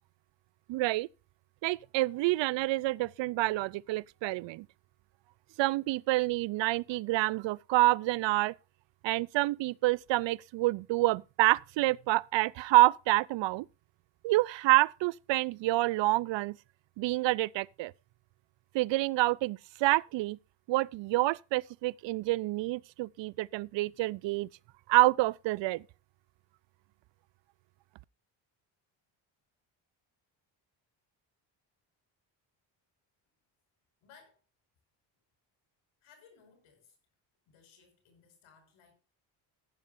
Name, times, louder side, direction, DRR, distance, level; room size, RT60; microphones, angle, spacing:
voice 1, 0.7-1.1 1.6-4.7 5.6-8.5 9.0-13.7 14.2-16.6 17.0-17.9 18.7-20.4 20.7-24.5 24.9-25.8, right 19 dB, 70° right, 0.5 m, -28 dB
voice 2, 34.0-34.4 36.0-37.0 37.5-38.9, left 6 dB, 85° left, 5.4 m, -60 dB
14.5 x 11.5 x 2.6 m
cardioid pair, 100°, 47 cm